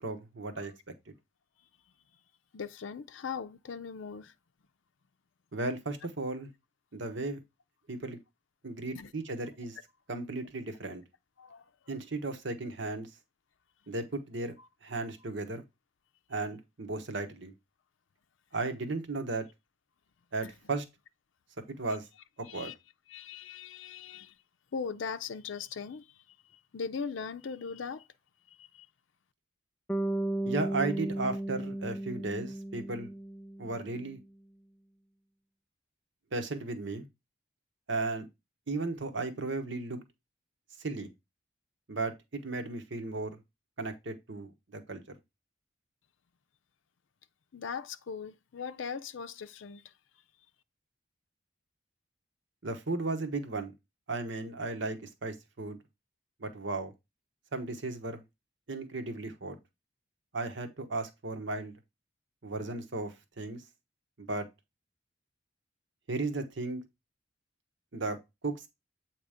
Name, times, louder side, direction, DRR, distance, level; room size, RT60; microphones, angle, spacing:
voice 1, 0.0-0.7 5.5-6.5 6.9-7.4 7.9-8.2 8.6-9.8 10.1-11.0 11.9-13.1 13.9-14.5 14.8-15.6 16.3-17.5 18.5-19.4 20.3-20.8 21.8-22.0 22.5-22.7 30.4-33.1 33.6-34.2 36.3-37.0 37.9-38.2 38.7-40.0 40.8-41.1 41.9-43.3 43.8-45.0 52.6-53.7 54.1-55.8 56.4-56.9 57.5-58.2 58.7-59.6 60.3-61.7 62.4-63.6 64.3-64.5 66.1-66.8 67.9-68.2 68.4-68.5, right 3 dB, 70° right, 1.1 m, -35 dB
voice 2, 2.5-4.3 9.0-9.1 11.4-11.6 14.6-14.7 20.4-20.5 22.4-22.7 23.1-24.3 24.7-26.2 26.7-28.0 28.6-28.9 47.5-49.8, left 6 dB, 80° left, 0.5 m, -39 dB
Bass guitar, 29.9-34.0, right 1 dB, 5° left, 0.3 m, -35 dB
8.1 x 3.0 x 4.9 m
head